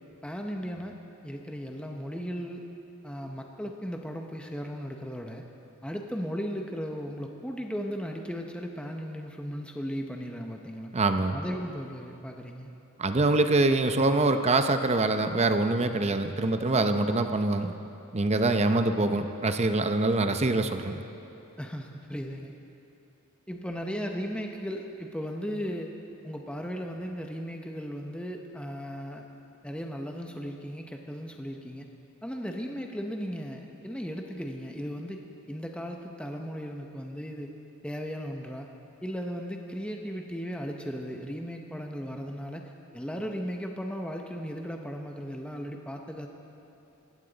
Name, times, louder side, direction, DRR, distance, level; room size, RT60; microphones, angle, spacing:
voice 1, 0.2-2.7 3.0-5.5 5.8-11.0 11.3-12.7 21.6-22.5 23.5-25.9 26.2-29.2 29.6-31.9 32.2-37.5 37.8-38.7 39.0-46.3, equal, 5° left, 2 dB, 0.8 m, -36 dB
voice 2, 10.9-11.4 13.0-17.7 18.1-21.0, right 2 dB, 30° right, 8 dB, 0.7 m, -24 dB
20.0 x 16.5 x 4.0 m, 2.9 s
head